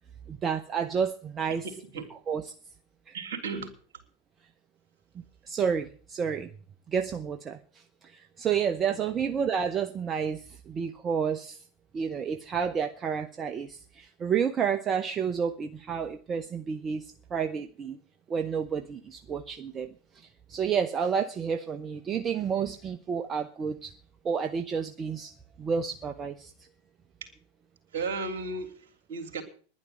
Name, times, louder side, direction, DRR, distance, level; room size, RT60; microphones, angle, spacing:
voice 1, 0.3-1.6 2.3-2.4 3.1-3.2 5.5-6.5 6.9-7.6 8.4-11.6 11.9-17.0 17.3-18.0 18.3-19.9 20.5-23.9 24.2-25.3 25.6-26.5, right 7 dB, 30° right, 7 dB, 0.9 m, -30 dB
voice 2, 1.6-2.1 3.1-3.7 8.8-9.0 27.9-29.4, right 4 dB, 65° right, 7 dB, 3.2 m, -35 dB
11.0 x 10.5 x 7.7 m, 0.42 s
hypercardioid pair, 90°, 0 cm